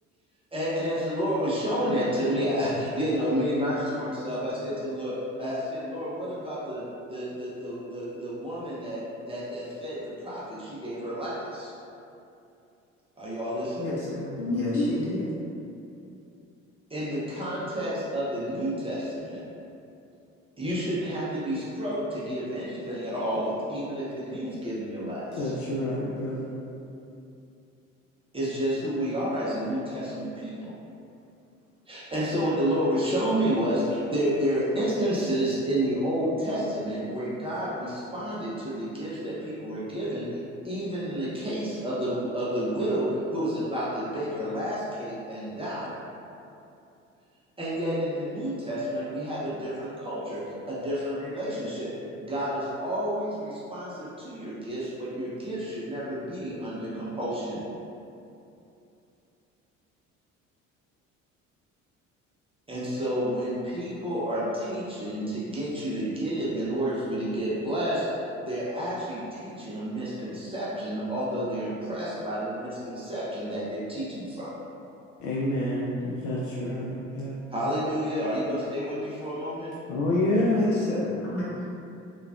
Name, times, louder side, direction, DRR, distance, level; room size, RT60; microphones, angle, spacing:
voice 1, 0.5-6.8 7.1-11.7 13.2-13.9 16.9-19.4 20.6-25.5 28.3-30.7 31.9-40.4 40.6-46.0 47.6-50.4 50.7-51.9 52.2-57.6 62.7-74.5 77.5-79.7, equal, 15° right, -9 dB, 0.6 m, -30 dB
voice 2, 13.8-15.3 80.3-81.5, left 1 dB, 35° left, -8 dB, 1.1 m, -32 dB
voice 3, 14.4-15.0 25.4-26.5 75.2-77.4 79.9-80.7, left 1 dB, 55° left, -5 dB, 0.5 m, -27 dB
3.3 x 2.3 x 2.4 m, 2.7 s
figure-of-eight pair, 55°, 38 cm